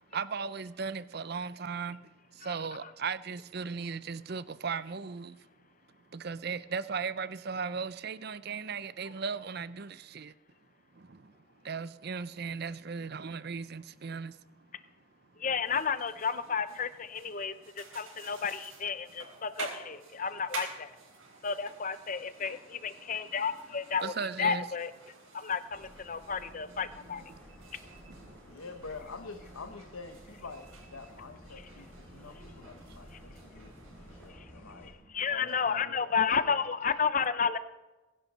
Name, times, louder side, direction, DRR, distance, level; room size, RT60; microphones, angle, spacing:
voice 1, 0.1-2.0 2.3-5.4 6.1-10.3 10.9-11.3 11.6-14.4 24.0-24.7 27.2-27.4 27.9-28.4, right 5 dB, 50° right, 0.5 m, -37 dB
voice 2, 15.4-20.9 21.4-24.1 24.4-24.9 25.3-27.2 35.1-37.6, left 6 dB, 40° left, 0.6 m, -32 dB
sound 1, 15.6-34.3, right 4 dB, 75° right, 4.4 m, -50 dB
sound 2, 25.7-34.9, equal, 10° left, 4.1 m, -53 dB
voice 3, 28.5-33.7 34.0-34.9 35.2-36.6, left 4 dB, 80° left, 1.0 m, -46 dB
22.0 x 11.0 x 4.1 m
head